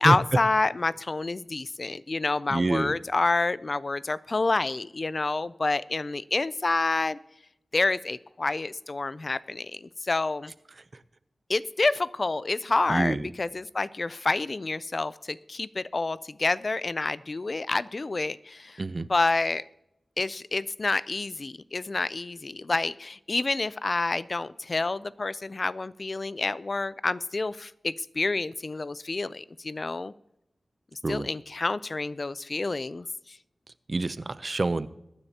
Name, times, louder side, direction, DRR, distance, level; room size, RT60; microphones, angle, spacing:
voice 1, 0.0-7.2 7.7-10.5 11.5-19.6 20.2-30.1 30.9-33.4, left 3 dB, 45° left, 17 dB, 0.3 m, -28 dB
voice 2, 2.5-3.0 12.9-13.3 18.8-19.1 31.0-31.3 33.9-34.9, right 2 dB, 45° right, 15 dB, 0.5 m, -27 dB
22.0 x 9.9 x 2.8 m, 0.85 s
wide cardioid pair, 95°, 0 cm